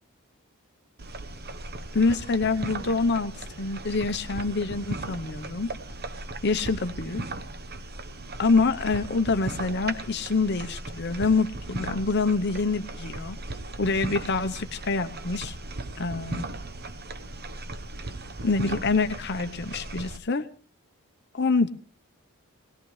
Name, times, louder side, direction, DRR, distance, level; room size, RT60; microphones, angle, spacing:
sound 1, 1.0-20.2, right 2 dB, 45° right, 1.0 m, -37 dB
voice 1, 1.9-3.3 3.6-5.7 6.4-7.2 8.4-13.4 13.8-15.6 16.0-16.5 18.4-20.4 21.3-21.7, left 4 dB, 50° left, 9 dB, 0.8 m, -26 dB
20.0 x 19.5 x 3.2 m, 0.42 s
head